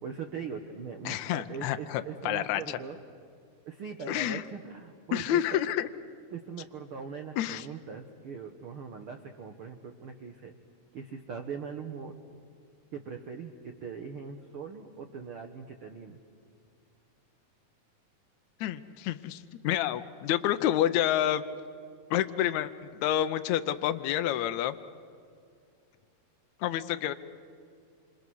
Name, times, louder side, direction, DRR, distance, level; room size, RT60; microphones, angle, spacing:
voice 1, 0.0-3.0 3.6-5.4 6.3-10.5 10.9-12.1 12.9-16.2, right 6 dB, 70° right, 4 dB, 1.3 m, -41 dB
voice 2, 1.0-2.8 4.1-4.4 5.1-5.9 7.4-7.7 18.6-21.4 22.1-24.8 26.6-27.1, left 12 dB, 80° left, 9 dB, 1.7 m, -29 dB
27.5 x 27.5 x 6.3 m, 2.3 s
omnidirectional pair, 4.1 m